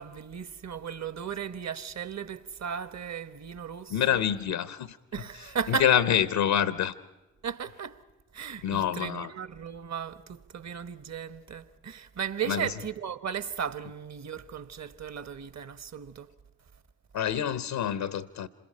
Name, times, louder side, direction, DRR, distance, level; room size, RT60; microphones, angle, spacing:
voice 1, 0.0-4.2 5.1-5.9 7.4-8.0 8.3-16.3, right 7 dB, 45° right, 1.3 m, -36 dB
voice 2, 3.9-5.0 5.7-6.9 8.6-9.3 12.5-12.7 17.1-18.5, left 9 dB, 65° left, 0.9 m, -26 dB
27.0 x 21.5 x 5.6 m
hypercardioid pair, 40°, 39 cm